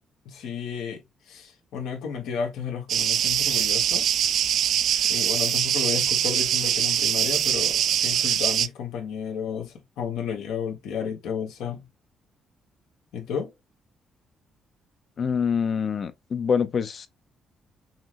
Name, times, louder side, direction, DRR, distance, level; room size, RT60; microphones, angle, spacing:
voice 1, 0.2-1.0 1.3-4.1 5.1-11.8 13.1-13.5, left 7 dB, 85° left, 1.3 m, -32 dB
sound 1, 2.9-8.7, right 10 dB, 70° right, 0.3 m, -23 dB
voice 2, 15.2-17.1, left 6 dB, 50° left, 0.6 m, -25 dB
5.8 x 2.1 x 3.0 m
cardioid pair, 90°, 0 cm